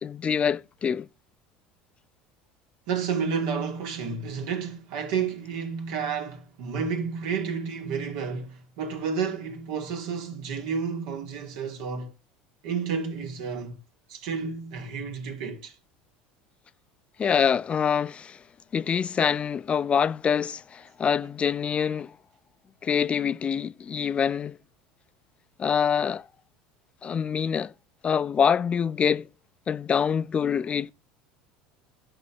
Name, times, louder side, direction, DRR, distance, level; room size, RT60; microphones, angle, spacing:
voice 1, 0.0-1.1 17.2-18.4 18.7-22.1 22.8-24.6 25.6-26.2 27.0-27.7 28.0-29.3 29.7-30.9, left 7 dB, 30° left, 0.6 m, -25 dB
voice 2, 2.9-12.1 12.6-13.7 14.1-15.7, right 6 dB, 75° right, 2.7 m, -31 dB
11.0 x 5.5 x 7.7 m
hypercardioid pair, 90°, 4 cm